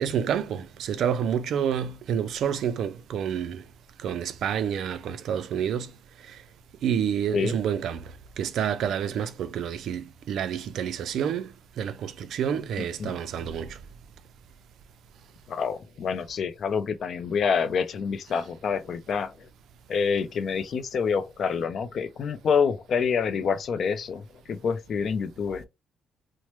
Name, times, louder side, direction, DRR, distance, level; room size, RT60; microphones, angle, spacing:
voice 1, 0.0-3.6 4.0-5.9 6.3-6.4 6.8-13.8, right 8 dB, 65° right, 0.3 m, -29 dB
voice 2, 12.8-13.2 15.5-19.5 19.9-24.2 24.5-25.6, left 6 dB, 45° left, 0.3 m, -27 dB
3.0 x 2.0 x 3.0 m
cardioid pair, 165°, 0 cm